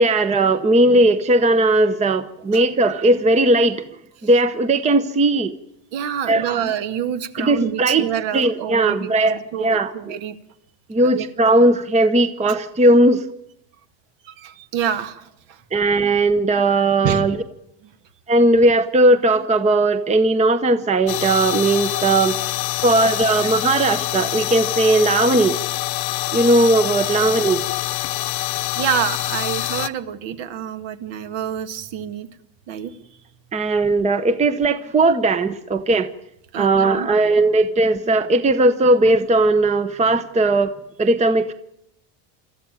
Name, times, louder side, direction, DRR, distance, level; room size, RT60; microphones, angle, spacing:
voice 1, 0.0-3.8 4.2-5.5 6.3-6.7 7.4-8.1 8.3-10.1 10.9-13.2 15.7-17.4 18.3-22.4 22.8-25.6 26.3-27.6 33.5-36.1 36.5-40.7 41.0-41.5, right 2 dB, 15° right, 12 dB, 0.9 m, -17 dB
voice 2, 5.9-10.4 11.0-11.3 14.2-15.6 17.0-17.3 17.8-17.9 28.7-32.3 32.7-33.0 36.5-37.1, right 9 dB, 60° right, 9 dB, 2.1 m, -27 dB
sound 1, 21.1-29.9, left 16 dB, 50° left, 1.1 m, -25 dB
26.5 x 14.0 x 9.2 m, 0.78 s
cardioid pair, 150°, 49 cm